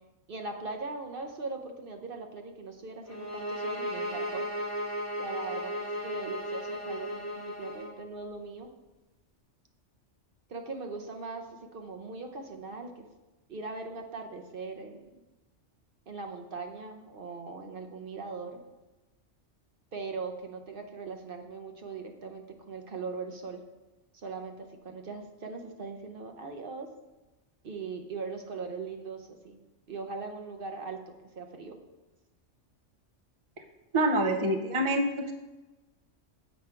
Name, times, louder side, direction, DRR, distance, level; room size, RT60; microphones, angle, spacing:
voice 1, 0.3-4.4 5.2-8.7 10.5-11.5 11.7-13.0 13.5-15.1 16.1-18.6 19.9-23.6 24.1-26.9 27.6-29.6 29.9-31.8, right 4 dB, 55° right, 4 dB, 0.8 m, -40 dB
sound 1, 3.1-8.0, equal, 15° left, 0.8 m, -35 dB
voice 2, 33.9-35.3, right 1 dB, 35° right, 5 dB, 0.5 m, -26 dB
7.4 x 4.9 x 4.4 m, 1.1 s
omnidirectional pair, 1.3 m